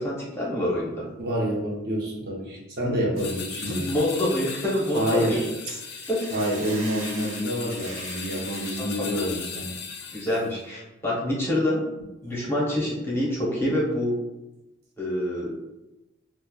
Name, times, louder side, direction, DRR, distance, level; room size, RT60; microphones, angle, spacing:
voice 1, 0.0-1.1 3.7-5.4 6.1-6.2 8.8-8.9 9.2-9.3 10.1-11.9 12.2-14.2 15.0-15.5, left 1 dB, 10° left, -6 dB, 0.7 m, -26 dB
voice 2, 1.2-4.0 4.9-5.5 6.3-9.7 12.2-12.3, equal, 50° right, -2 dB, 0.7 m, -28 dB
Hiss / Boiling, 3.1-8.8, right 3 dB, 90° right, 0.7 m, -44 dB
sound 1, 3.2-10.5, left 6 dB, 50° left, 0.4 m, -38 dB
5.9 x 2.1 x 2.2 m, 0.97 s
head